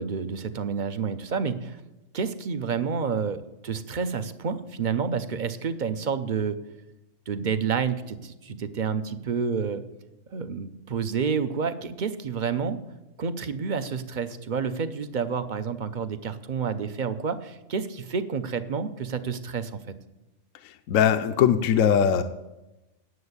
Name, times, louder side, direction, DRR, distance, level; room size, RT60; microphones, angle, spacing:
voice 1, 0.0-1.8 2.1-6.6 7.3-9.8 10.3-12.8 13.2-20.0, right 6 dB, 45° right, 11 dB, 0.7 m, -29 dB
voice 2, 20.6-22.2, left 8 dB, 75° left, 8 dB, 1.0 m, -21 dB
9.6 x 7.6 x 8.1 m, 0.98 s
omnidirectional pair, 1.4 m